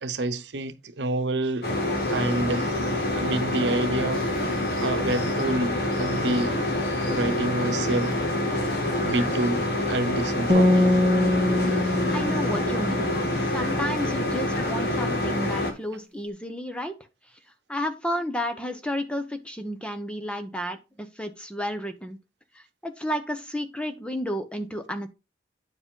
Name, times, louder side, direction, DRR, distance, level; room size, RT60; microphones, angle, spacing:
voice 1, 0.0-1.7 2.1-2.7 3.1-4.5 4.8-6.6 7.1-8.2 9.0-11.0, right 2 dB, 85° right, 0.8 m, -28 dB
sound 1, 1.6-15.7, left 1 dB, 60° left, 2.0 m, -26 dB
sound 2, 10.5-13.7, left 1 dB, 15° right, 1.5 m, -23 dB
voice 2, 12.1-13.1 13.4-17.0 17.7-22.2 22.5-25.1, equal, 5° left, 0.9 m, -32 dB
9.5 x 5.0 x 3.7 m
head